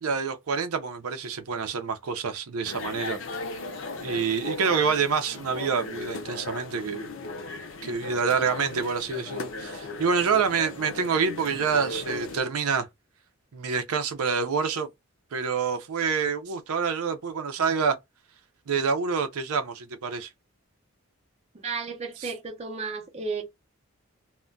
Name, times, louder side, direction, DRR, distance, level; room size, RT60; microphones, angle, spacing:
voice 1, 0.0-3.2 4.0-7.1 7.8-12.9 13.5-14.9 15.3-18.0 18.7-20.3 22.2-22.3, right 5 dB, 80° right, 0.5 m, -27 dB
sound 1, 2.6-12.4, left 3 dB, 60° left, 0.6 m, -37 dB
voice 2, 21.5-23.4, right 4 dB, 30° right, 0.5 m, -33 dB
2.2 x 2.1 x 3.7 m
head